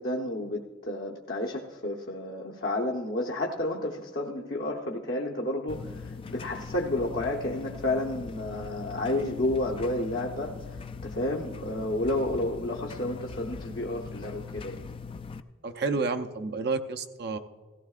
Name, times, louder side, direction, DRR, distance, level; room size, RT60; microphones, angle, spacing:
voice 1, 0.0-10.5 11.0-14.8, left 1 dB, 55° left, -2 dB, 0.9 m, -31 dB
sound 1, 5.7-15.4, left 5 dB, 25° left, 0.3 m, -41 dB
voice 2, 15.6-17.4, right 4 dB, 55° right, 7 dB, 0.6 m, -30 dB
17.0 x 15.5 x 2.4 m, 1.4 s
head